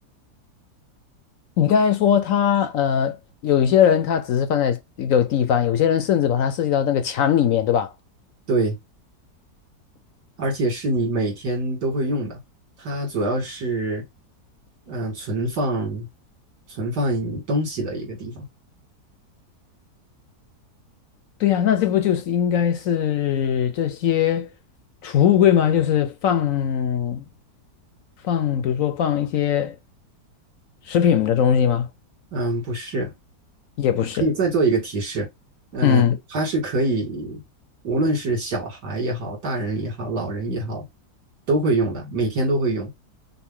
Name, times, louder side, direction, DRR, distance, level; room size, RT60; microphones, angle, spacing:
voice 1, 1.6-3.2 3.4-7.9 21.4-24.5 25.0-27.2 28.2-29.7 30.9-31.9 33.8-34.3 35.8-36.2, left 9 dB, 65° left, 0.9 m, -20 dB
voice 2, 10.4-12.4 12.8-14.1 14.9-16.1 16.7-18.5 32.3-33.1 34.2-35.3 35.7-36.0 36.3-37.4 37.8-40.9 41.5-42.9, right 2 dB, 75° right, 2.8 m, -24 dB
5.8 x 2.2 x 3.7 m
omnidirectional pair, 1.8 m